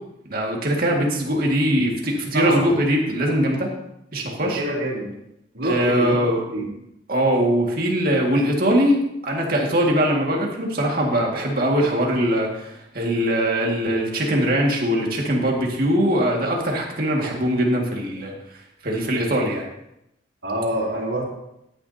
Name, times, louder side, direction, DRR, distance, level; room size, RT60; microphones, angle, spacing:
voice 1, 0.3-3.7 4.1-4.6 5.6-6.4 7.1-18.3 18.8-19.6, equal, 50° right, 0 dB, 2.0 m, -21 dB
voice 2, 2.3-2.7 4.4-5.1 5.5-6.2 6.5-6.7 20.4-21.2, right 1 dB, 85° right, -5 dB, 3.4 m, -25 dB
13.5 x 9.6 x 2.8 m, 0.84 s
head